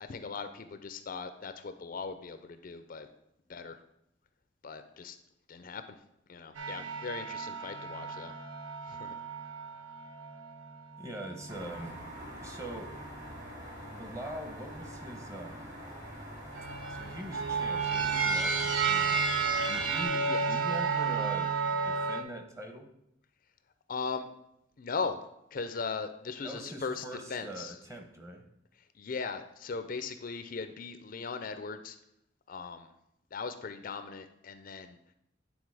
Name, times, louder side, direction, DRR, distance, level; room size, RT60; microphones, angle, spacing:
voice 1, 0.1-3.1 3.5-3.8 4.6-5.2 5.5-6.0 6.3-8.3 8.9-9.2 20.3-20.5 23.9-24.3 24.8-25.2 25.5-27.0 27.3-27.7 29.0-32.0 32.5-32.9 33.3-35.0, left 4 dB, 50° left, 10 dB, 0.4 m, -38 dB
sound 1, 6.6-12.1 12.7-13.6 14.8-15.5 16.5-22.2, right 5 dB, 90° right, 0.8 m, -33 dB
voice 2, 11.0-12.1 12.4-13.0 13.9-15.8 16.9-22.9 26.4-28.5, right 1 dB, 15° right, 4 dB, 0.9 m, -43 dB
sound 2, 11.5-20.1, equal, 40° right, 2.3 m, -45 dB
8.9 x 3.8 x 4.7 m, 0.80 s
head